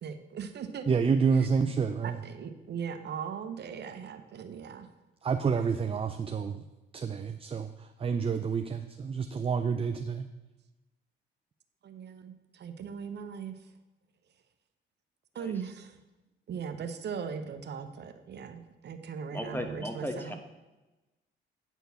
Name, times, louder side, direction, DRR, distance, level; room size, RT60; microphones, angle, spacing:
voice 1, 0.0-0.9 2.0-4.9 11.8-13.6 15.3-16.0 16.5-20.3, right 7 dB, 60° right, 8 dB, 0.8 m, -39 dB
voice 2, 0.9-2.2 5.2-6.6 6.9-10.3, right 6 dB, 30° right, 7 dB, 0.5 m, -29 dB
voice 3, 19.3-20.4, left 1 dB, 10° left, 5 dB, 1.3 m, -36 dB
9.2 x 4.5 x 6.9 m, 1.1 s
cardioid pair, 90°, 20 cm